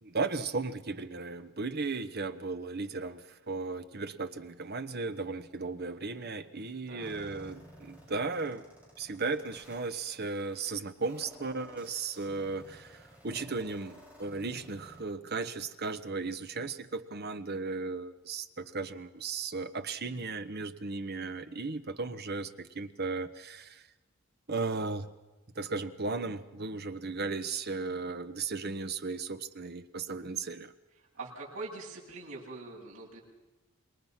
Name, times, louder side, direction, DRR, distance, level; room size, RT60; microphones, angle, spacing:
voice 1, 0.0-8.7 9.0-23.8 24.5-25.1 25.5-30.7, right 3 dB, 50° right, 10 dB, 1.1 m, -36 dB
sound 1, 7.0-15.0, equal, 5° right, 5.8 m, -54 dB
voice 2, 31.2-33.2, right 3 dB, 75° right, -5 dB, 7.6 m, -43 dB
27.0 x 22.0 x 5.9 m, 1.1 s
head